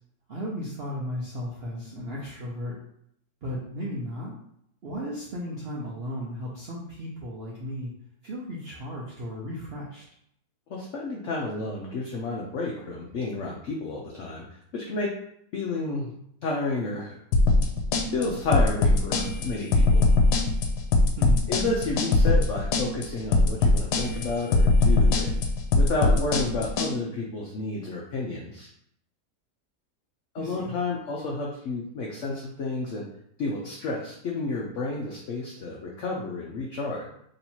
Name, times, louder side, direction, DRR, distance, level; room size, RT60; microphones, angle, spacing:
voice 1, 0.3-2.7 3.4-4.3 4.8-7.9 8.2-10.0 21.2-21.5 30.4-30.7, equal, 55° right, -4 dB, 0.7 m, -35 dB
voice 2, 10.7-15.1 15.5-16.1 16.4-17.2 18.1-20.1 21.5-25.4 25.8-28.7 30.3-33.1 33.4-37.1, left 2 dB, 65° left, -2 dB, 0.8 m, -31 dB
sound 1, 17.3-26.9, left 3 dB, 90° left, 1.2 m, -21 dB
3.1 x 2.7 x 4.3 m, 0.71 s
omnidirectional pair, 1.7 m